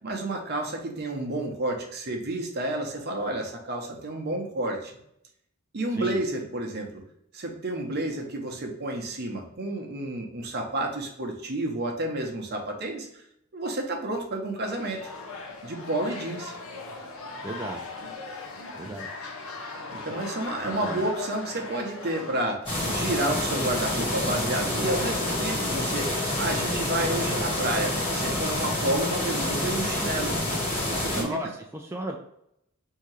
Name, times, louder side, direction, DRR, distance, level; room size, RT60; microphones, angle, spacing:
voice 1, 0.0-4.9 5.7-7.0 7.3-13.2 13.5-15.1 15.6-16.5 18.8-18.9 19.9-30.4 30.8-31.4, right 1 dB, 50° right, 1 dB, 0.8 m, -30 dB
voice 2, 5.9-6.2 17.4-17.9 18.7-19.1 20.6-21.0 31.1-32.2, right 1 dB, 10° right, 0 dB, 0.3 m, -35 dB
sound 1, 14.6-22.5, left 3 dB, 85° left, 0.9 m, -39 dB
sound 2, 22.7-31.2, left 1 dB, 25° left, 1.6 m, -28 dB
3.6 x 2.8 x 4.7 m, 0.76 s
head